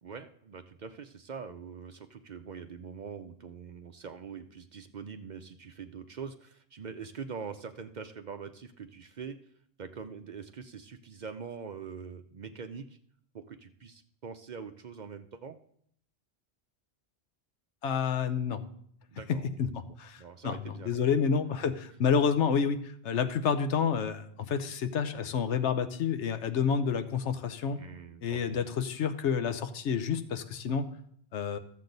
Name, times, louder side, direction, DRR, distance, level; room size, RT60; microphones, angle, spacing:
voice 1, 0.0-9.4 9.8-13.0 13.3-15.6 19.1-19.5 19.8-21.1 27.8-28.6, right 6 dB, 50° right, 8 dB, 0.6 m, -43 dB
voice 2, 17.8-18.6 19.3-19.7 20.0-27.8 28.2-30.8 31.3-31.6, left 6 dB, 90° left, 10 dB, 1.1 m, -29 dB
13.5 x 7.4 x 3.9 m, 0.66 s
omnidirectional pair, 1.1 m